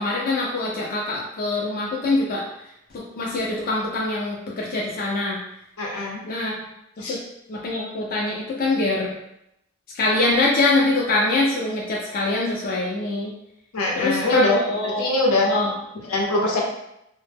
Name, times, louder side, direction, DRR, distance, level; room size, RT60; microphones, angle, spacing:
voice 1, 0.0-2.4 2.9-5.4 6.2-6.6 7.0-7.2 7.5-9.1 9.9-13.3 14.0-15.1 15.5-15.7, left 2 dB, 40° left, -4 dB, 0.4 m, -24 dB
voice 2, 5.8-6.2 7.0-7.2 13.7-14.6 14.8-15.5 16.1-16.6, left 2 dB, 75° left, -1 dB, 0.6 m, -22 dB
2.0 x 2.0 x 3.3 m, 0.80 s
head